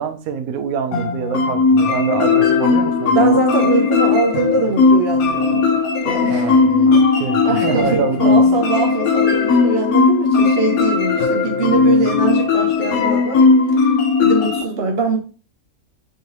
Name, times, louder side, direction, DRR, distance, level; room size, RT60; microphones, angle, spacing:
voice 1, 0.0-3.4 6.3-8.4, right 7 dB, 70° right, 1.0 m, -25 dB
sound 1, 0.9-14.6, left 4 dB, 75° left, 1.1 m, -16 dB
voice 2, 3.1-5.6 6.0-6.6 6.9-7.1 7.4-13.4 14.2-15.2, right 3 dB, 50° right, 0.9 m, -22 dB
4.6 x 3.1 x 2.9 m
omnidirectional pair, 1.6 m